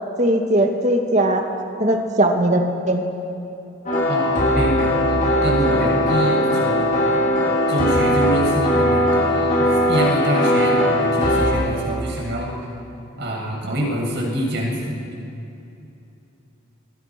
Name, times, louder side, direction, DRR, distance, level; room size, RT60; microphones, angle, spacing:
voice 1, 0.2-1.4 1.8-3.1, right 1 dB, 35° right, 3 dB, 2.3 m, -19 dB
sound 1, 3.9-11.5, left 1 dB, 40° left, 6.5 m, -19 dB
voice 2, 4.1-7.1 7.7-12.5 13.2-15.0, right 1 dB, 55° right, -1 dB, 7.4 m, -25 dB
30.0 x 23.5 x 6.1 m, 2.8 s
head